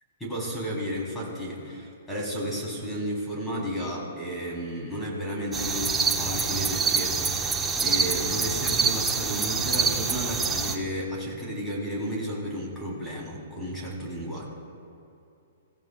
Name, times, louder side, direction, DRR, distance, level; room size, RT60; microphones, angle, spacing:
voice 1, 0.2-14.5, equal, 5° left, -4 dB, 3.5 m, -33 dB
Crickets-Grasshoppers-Birds, 5.5-10.8, right 5 dB, 10° right, 0.8 m, -26 dB
27.5 x 15.0 x 2.4 m, 2.6 s
hypercardioid pair, 155°, 0 cm